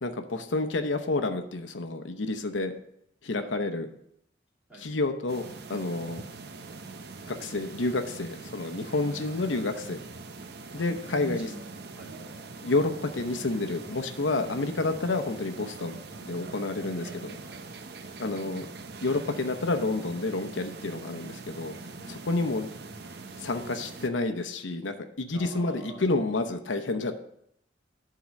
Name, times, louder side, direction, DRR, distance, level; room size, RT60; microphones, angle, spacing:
voice 1, 0.0-2.7 3.2-3.9 4.8-6.2 7.3-10.0 10.7-11.5 12.6-17.3 18.2-18.7 19.0-21.7 22.1-22.7 23.4-27.1, left 2 dB, 85° left, 7 dB, 0.8 m, -29 dB
sound 1, 5.3-24.1, right 3 dB, 60° right, 0.7 m, -43 dB
voice 2, 9.1-9.9 10.7-11.6 11.9-12.5 16.8-17.6 22.0-22.7 25.3-26.1, equal, 5° right, -6 dB, 3.0 m, -45 dB
11.5 x 3.9 x 6.3 m, 0.75 s
head